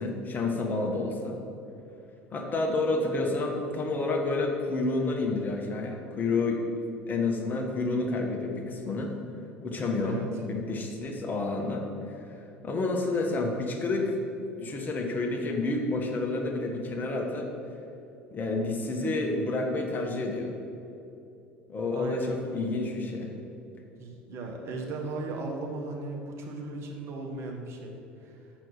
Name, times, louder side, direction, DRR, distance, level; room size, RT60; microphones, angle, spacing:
voice 1, 0.0-1.3 2.3-6.6 7.1-9.1 9.6-10.2 10.5-11.8 12.1-12.4 12.6-14.1 14.6-17.5 18.3-20.5 21.7-23.3, left 3 dB, 30° left, 1 dB, 1.3 m, -29 dB
voice 2, 21.9-22.3 24.0-27.9 28.2-28.4, right 2 dB, 45° right, 1 dB, 1.4 m, -36 dB
6.7 x 6.2 x 6.4 m, 2.8 s
figure-of-eight pair, 70°, 6 cm